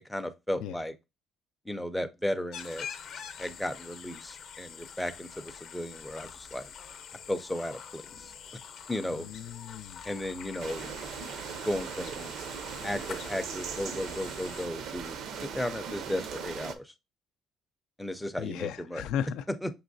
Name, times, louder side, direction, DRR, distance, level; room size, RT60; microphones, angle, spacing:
voice 1, 0.1-0.9 1.7-2.9 3.4-6.7 7.3-8.3 8.9-9.3 10.0-10.9 11.6-12.3 12.8-16.9 18.0-19.0 19.6-19.7, left 1 dB, 5° left, 0.4 m, -35 dB
sound 1, 2.5-14.7, left 7 dB, 50° left, 0.6 m, -45 dB
voice 2, 9.1-10.0 18.4-19.4, left 9 dB, 85° left, 0.3 m, -35 dB
sound 2, 10.6-16.7, right 7 dB, 65° right, 0.5 m, -39 dB
6.2 x 2.9 x 2.5 m
cardioid pair, 160°, 0 cm